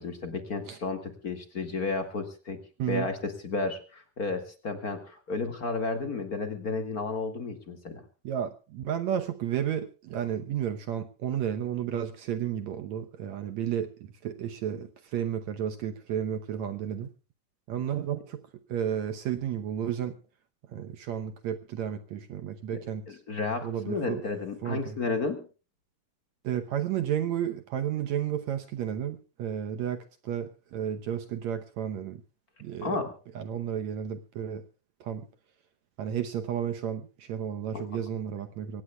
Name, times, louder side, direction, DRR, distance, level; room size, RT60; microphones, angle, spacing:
voice 1, 0.0-2.6 2.9-8.0 23.1-25.5 32.8-33.1 37.7-37.9, left 3 dB, 30° left, 6 dB, 1.9 m, -32 dB
voice 2, 8.2-17.1 17.7-18.4 18.7-20.2 20.7-23.2 23.6-24.2 24.6-25.0 26.4-32.2 32.6-33.1 33.4-34.6 35.0-35.3 36.0-38.8, right 9 dB, 70° right, 8 dB, 1.8 m, -32 dB
24.5 x 18.0 x 2.3 m, 0.34 s
omnidirectional pair, 4.1 m